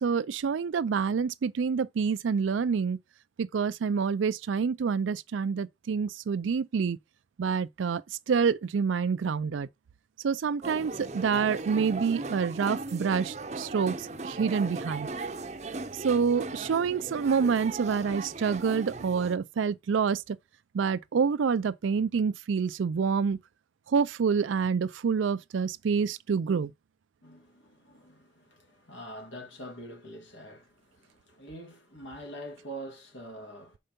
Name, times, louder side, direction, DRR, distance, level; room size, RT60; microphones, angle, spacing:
voice 1, 0.0-3.0 3.4-7.0 7.4-8.0 8.3-9.7 10.2-13.9 14.2-15.1 16.0-20.4 20.7-23.4 23.9-26.7, right 6 dB, 85° right, 0.4 m, -27 dB
sound 1, 10.6-19.4, right 3 dB, 35° right, 0.6 m, -38 dB
voice 2, 27.2-33.8, right 1 dB, 85° left, 2.6 m, -45 dB
5.5 x 4.5 x 5.2 m
head